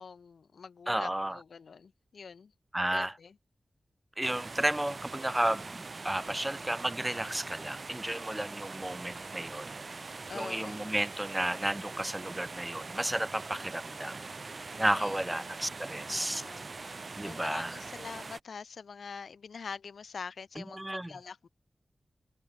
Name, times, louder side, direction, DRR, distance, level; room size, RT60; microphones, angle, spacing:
voice 1, 0.0-2.5 2.9-3.4 10.3-10.9 14.9-15.5 16.0-21.5, left 5 dB, 85° left, 3.5 m, -45 dB
voice 2, 0.9-1.4 2.7-3.1 4.2-9.7 10.3-14.2 14.8-16.4 17.2-17.7 20.6-21.1, right 1 dB, 15° right, 1.5 m, -32 dB
sound 1, 4.2-18.4, right 3 dB, 50° right, 2.2 m, -43 dB
wide cardioid pair, 70°, 0 cm